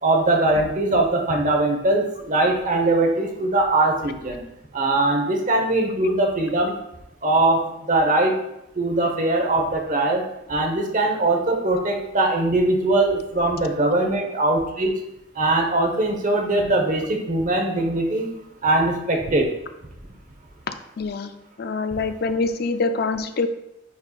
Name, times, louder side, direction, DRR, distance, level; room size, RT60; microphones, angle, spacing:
voice 1, 0.0-4.4 4.7-6.8 7.2-7.6 7.9-8.4 8.8-10.2 10.5-14.9 15.3-18.3 18.6-19.5, right 2 dB, 45° right, 3 dB, 1.1 m, -21 dB
voice 2, 20.7-21.3 21.6-23.5, left 3 dB, 55° left, 9 dB, 0.4 m, -25 dB
9.3 x 4.4 x 2.4 m, 0.84 s
head